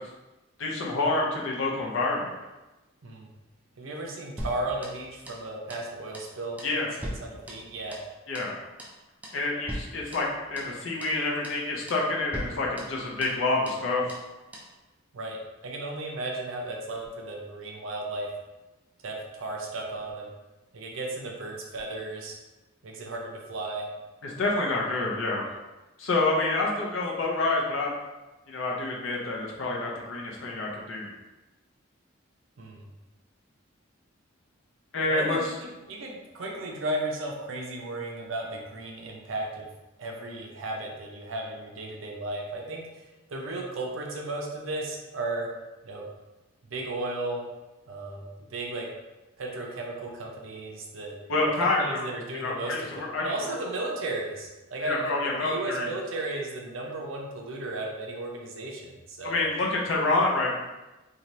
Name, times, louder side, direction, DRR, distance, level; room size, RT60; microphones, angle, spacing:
voice 1, 0.6-2.3 6.6-6.9 8.3-8.5 9.3-14.0 24.2-25.5 26.0-27.9 28.5-31.1 34.9-35.4 51.3-51.8 52.3-53.3 54.8-55.9 59.2-60.5, left 2 dB, 75° left, -3 dB, 0.6 m, -27 dB
voice 2, 3.8-6.6 7.2-8.0 15.1-15.4 15.6-18.3 19.0-20.3 20.7-22.4 22.8-23.9 32.6-32.9 35.1-39.7 40.0-45.5 45.8-46.1 46.6-47.4 47.9-48.2 48.5-48.9 49.4-51.2 51.6-59.4, right 2 dB, 80° right, 0 dB, 0.6 m, -35 dB
sound 1, 4.4-5.4 5.7-5.9 6.1-6.3 6.6-8.1 8.3-8.5 8.8-9.0 9.2-9.4 9.7-10.7 11.0-11.2 11.4-11.6 11.9-12.1 12.3-13.4 13.7-13.8 14.1-14.3 14.5-14.7, equal, 10° right, 0.3 m, -40 dB
2.7 x 2.4 x 3.0 m, 1.1 s
head